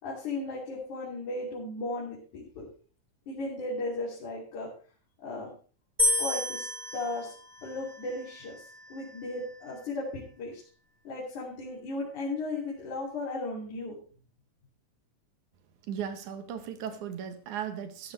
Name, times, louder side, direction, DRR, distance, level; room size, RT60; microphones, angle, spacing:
voice 1, 0.0-2.7 3.3-4.7 5.2-5.5 6.2-6.7 6.9-7.3 7.6-10.6 11.0-14.0, left 2 dB, 70° left, -6 dB, 4.4 m, -36 dB
sound 1, 6.0-9.2, left 1 dB, 10° right, 7.1 m, -31 dB
voice 2, 15.9-18.1, right 8 dB, 75° right, 9 dB, 2.5 m, -36 dB
14.5 x 11.0 x 3.3 m, 0.41 s
omnidirectional pair, 3.6 m